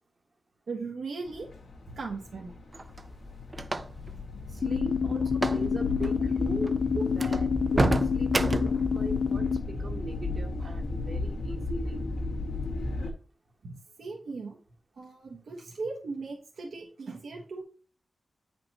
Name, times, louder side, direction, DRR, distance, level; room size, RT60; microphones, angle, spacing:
voice 1, 0.7-1.5 1.9-2.6 5.1-5.3 6.0-6.1 6.9-7.0 10.9-11.0 13.6-14.6 15.0-17.6, right 4 dB, 80° right, -1 dB, 1.2 m, -38 dB
sound 1, 1.3-13.1, left 2 dB, 90° left, 1.9 m, -35 dB
sound 2, 2.7-4.1 5.3-5.7 5.9-6.1 6.6-6.7 7.2-8.9, right 2 dB, 25° right, 0.4 m, -29 dB
voice 2, 4.5-6.8 7.1-7.5 7.7-12.0, right 2 dB, 50° right, 0 dB, 1.3 m, -40 dB
sound 3, 4.6-9.6, left 6 dB, 60° left, 0.4 m, -28 dB
9.1 x 5.2 x 2.9 m, 0.41 s
wide cardioid pair, 125°, 0 cm